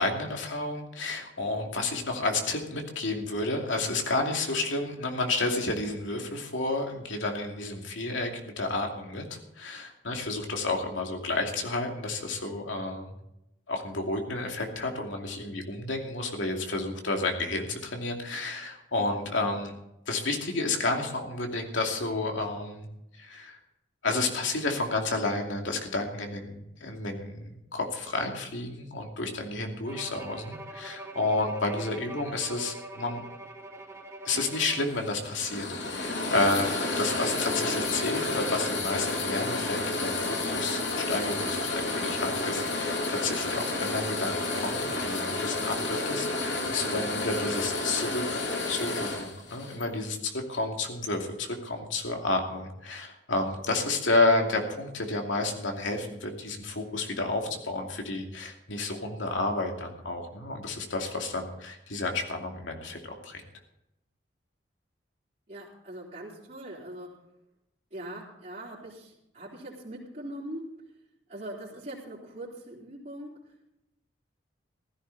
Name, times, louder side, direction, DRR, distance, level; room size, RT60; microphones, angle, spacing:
voice 1, 0.0-13.1 13.7-19.7 20.1-22.9 23.2-23.6 24.0-33.2 34.2-36.7 37.0-63.4, left 2 dB, 85° left, 2 dB, 2.7 m, -31 dB
Bowed string instrument, 29.9-35.2, right 2 dB, 15° right, 1.1 m, -44 dB
sound 1, 34.3-49.9, left 2 dB, 70° left, 2.9 m, -31 dB
voice 2, 65.5-67.2 67.9-70.7 71.3-73.4, right 1 dB, 45° right, -9 dB, 3.4 m, -41 dB
15.5 x 14.5 x 4.1 m, 0.85 s
head